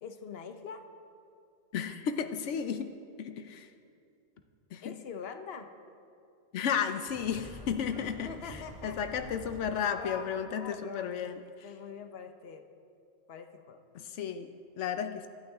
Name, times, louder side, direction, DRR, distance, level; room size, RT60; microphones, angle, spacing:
voice 1, 0.0-0.8 4.8-5.7 8.2-9.0 9.8-12.6 13.3-13.8, left 6 dB, 60° left, 7 dB, 1.1 m, -44 dB
voice 2, 1.7-2.9 3.2-3.7 4.7-5.0 6.5-11.4 13.9-15.3, left 7 dB, 90° left, 8 dB, 1.0 m, -33 dB
sound 1, 7.1-9.6, equal, 30° right, 1.8 m, -47 dB
25.0 x 12.0 x 3.6 m, 2.5 s
omnidirectional pair, 1.2 m